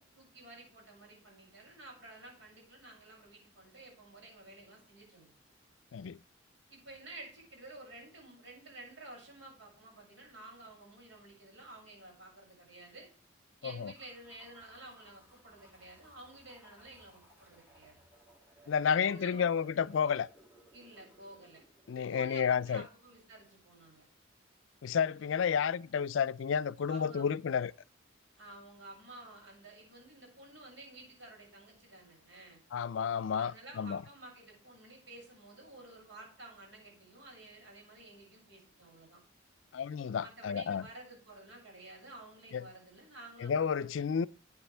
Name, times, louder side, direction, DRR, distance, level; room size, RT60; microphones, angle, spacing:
voice 1, 0.0-5.3 6.7-13.1 13.6-18.0 18.9-19.5 20.7-21.6 22.1-24.0 26.9-27.3 28.4-32.6 33.4-39.2 40.2-44.1, right 2 dB, 70° right, 6.7 m, -52 dB
sound 1, 13.9-22.5, right 1 dB, 10° right, 2.4 m, -62 dB
voice 2, 18.7-20.3 21.9-22.8 24.8-27.7 32.7-34.0 39.7-40.8 42.5-42.6 43.4-44.3, left 7 dB, 75° left, 0.4 m, -31 dB
13.0 x 8.7 x 3.4 m
head